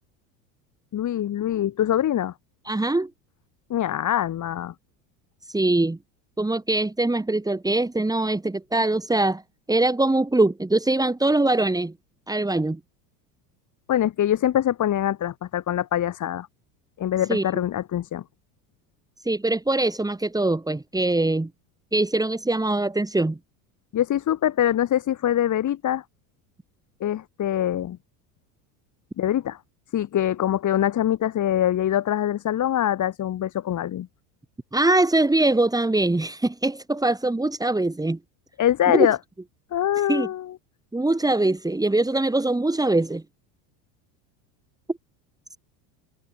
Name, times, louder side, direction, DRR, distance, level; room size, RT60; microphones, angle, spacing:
voice 1, 0.9-2.3 3.7-4.7 13.9-16.5 17.0-18.2 23.9-26.0 27.0-28.0 29.2-29.6 29.9-34.1 38.6-39.2 39.7-40.5, left 11 dB, 40° left, 6.3 m, -24 dB
voice 2, 2.7-3.1 5.5-6.0 6.4-9.4 9.7-11.9 12.3-12.8 17.3-17.4 19.2-21.5 21.9-23.4 34.7-38.2 38.9-39.1 40.1-40.3 40.9-43.2, right 2 dB, 10° right, 6.0 m, -22 dB
supercardioid pair, 110°, 45 cm